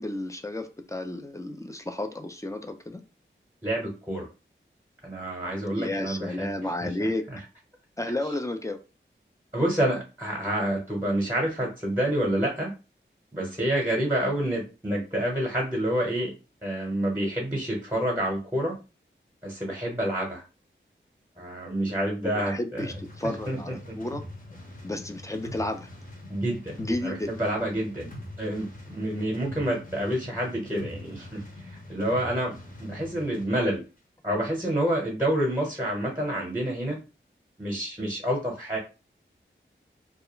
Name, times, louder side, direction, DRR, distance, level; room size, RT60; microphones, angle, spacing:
voice 1, 0.0-3.0 5.7-7.2 8.0-8.8 22.2-24.2 24.8-25.9 26.8-27.3, left 1 dB, 15° left, 0.4 m, -32 dB
voice 2, 3.6-4.3 5.0-6.5 7.3-7.4 9.5-12.7 13.3-16.3 16.6-18.8 19.4-20.4 21.4-22.8 23.5-24.0 26.3-28.1 28.4-33.8 34.2-37.0 37.6-38.8, right 1 dB, 10° right, 0.9 m, -28 dB
sound 1, 22.8-33.5, left 1 dB, 40° left, 0.9 m, -43 dB
2.3 x 2.1 x 3.0 m
wide cardioid pair, 50°, 20 cm